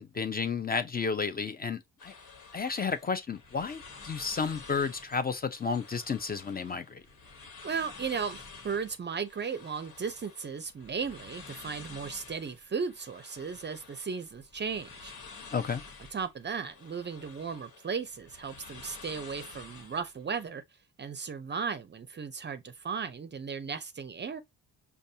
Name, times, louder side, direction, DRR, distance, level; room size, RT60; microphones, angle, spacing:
voice 1, 0.0-2.1 2.5-7.0 15.5-15.8, left 5 dB, 25° left, 0.5 m, -32 dB
sound 1, 2.0-20.5, left 4 dB, 75° left, 1.4 m, -50 dB
voice 2, 7.6-15.1 16.1-20.6 21.0-24.4, right 6 dB, 30° right, 0.5 m, -36 dB
5.2 x 2.3 x 2.7 m
cardioid pair, 80°, 36 cm